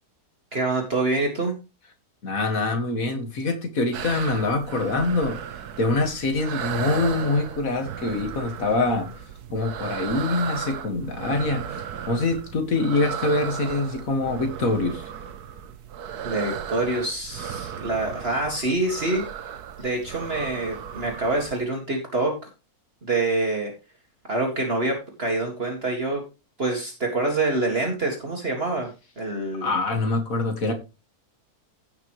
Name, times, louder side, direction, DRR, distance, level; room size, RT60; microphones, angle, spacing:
voice 1, 0.5-1.5 16.2-19.2 19.8-22.3 23.0-23.7 24.2-26.2 26.6-29.7, right 2 dB, 40° right, 2.2 m, -26 dB
voice 2, 2.2-5.4 5.8-9.2 9.5-15.0 29.6-30.7, left 3 dB, 60° left, 2.3 m, -25 dB
sound 1, 3.9-21.6, right 8 dB, 90° right, 1.4 m, -35 dB
16.0 x 6.0 x 3.1 m
omnidirectional pair, 1.6 m